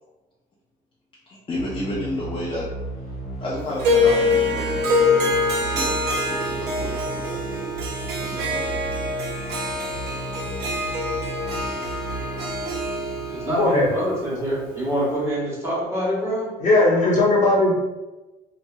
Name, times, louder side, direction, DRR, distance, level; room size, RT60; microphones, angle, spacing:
voice 1, 1.3-2.7 3.4-7.4 8.1-8.8, left 1 dB, 30° left, -6 dB, 0.6 m, -32 dB
sound 1, 1.6-13.5, right 2 dB, 75° left, 1.1 m, -35 dB
Harp, 3.8-15.1, left 2 dB, 75° right, 0.7 m, -25 dB
voice 2, 13.3-16.5, equal, 15° right, -7 dB, 1.4 m, -25 dB
voice 3, 16.6-17.8, left 2 dB, 45° left, -6 dB, 1.1 m, -18 dB
2.9 x 2.7 x 2.3 m, 1.1 s
cardioid pair, 110°, 17 cm